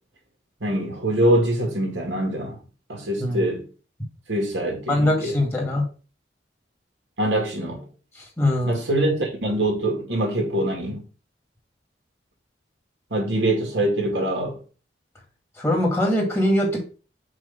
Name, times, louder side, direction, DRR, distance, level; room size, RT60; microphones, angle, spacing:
voice 1, 0.6-2.6 2.9-3.7 4.3-5.4 7.2-7.9 8.6-11.0 13.1-14.6, right 1 dB, 85° right, 2.2 m, -24 dB
voice 2, 4.9-5.9 8.2-8.8 15.6-16.8, left 1 dB, 15° left, 2.0 m, -22 dB
6.1 x 3.0 x 5.7 m
head